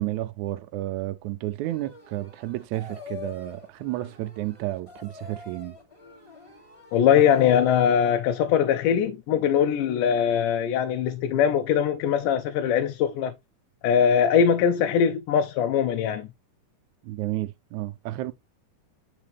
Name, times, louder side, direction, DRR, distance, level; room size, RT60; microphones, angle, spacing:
voice 1, 0.0-5.8 17.0-18.3, right 16 dB, 75° right, 1.9 m, -31 dB
sound 1, 1.6-7.8, left 5 dB, 10° left, 1.9 m, -46 dB
voice 2, 6.9-13.3 13.8-16.3, left 8 dB, 90° left, 2.2 m, -21 dB
8.5 x 4.9 x 3.4 m
omnidirectional pair, 3.6 m